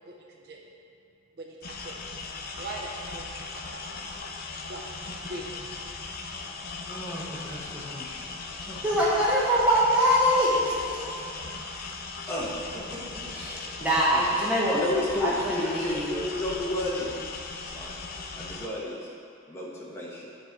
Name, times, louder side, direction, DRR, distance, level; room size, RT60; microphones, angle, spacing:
voice 1, 0.1-0.6 1.4-2.0 2.6-3.9 4.7-5.7, right 1 dB, 50° right, -1 dB, 0.6 m, -41 dB
sound 1, 1.6-18.7, left 4 dB, 45° left, 0.5 m, -38 dB
voice 2, 6.8-8.3 8.6-9.2 12.3-13.4 14.1-14.3 14.8-17.1 17.7-18.0 18.4-19.1 19.5-20.3, left 1 dB, 10° left, -6 dB, 1.1 m, -33 dB
voice 3, 8.8-11.0 13.3-14.8 15.2-16.1, equal, 5° right, -8 dB, 1.3 m, -24 dB
8.2 x 4.3 x 4.5 m, 2.6 s
head